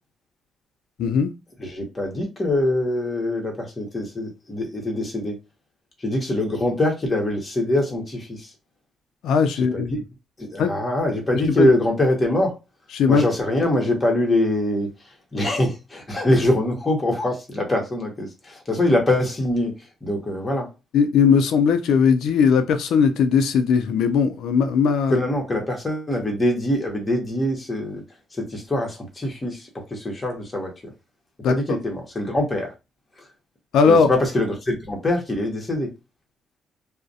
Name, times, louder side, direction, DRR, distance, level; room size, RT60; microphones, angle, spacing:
voice 1, 1.0-1.3 9.2-9.9 10.6-10.7 11.5-11.7 12.9-13.2 20.9-25.2 31.4-31.5 33.7-34.1, left 6 dB, 80° left, 0.4 m, -18 dB
voice 2, 1.6-5.4 6.0-8.5 9.7-10.0 10.4-12.6 13.1-14.9 15.3-19.7 20.0-20.7 25.1-28.0 28.4-30.9 31.5-32.7 33.9-35.9, left 1 dB, 25° left, 0.9 m, -23 dB
2.4 x 2.0 x 2.6 m
cardioid pair, 90°, 0 cm